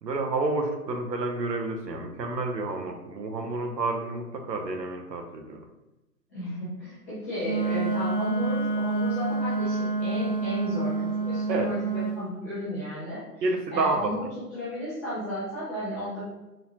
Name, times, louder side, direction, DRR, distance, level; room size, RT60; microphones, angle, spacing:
voice 1, 0.0-5.6 11.5-11.7 13.4-14.2, right 3 dB, 85° right, 3 dB, 0.9 m, -29 dB
voice 2, 6.3-13.4 13.7-14.2 14.5-16.2, equal, 10° left, -12 dB, 0.6 m, -33 dB
Wind instrument woodwind instrument, 7.4-12.2, right 3 dB, 45° right, 1.0 m, -28 dB
4.0 x 2.3 x 2.8 m, 1.0 s
hypercardioid pair, 145°, 49 cm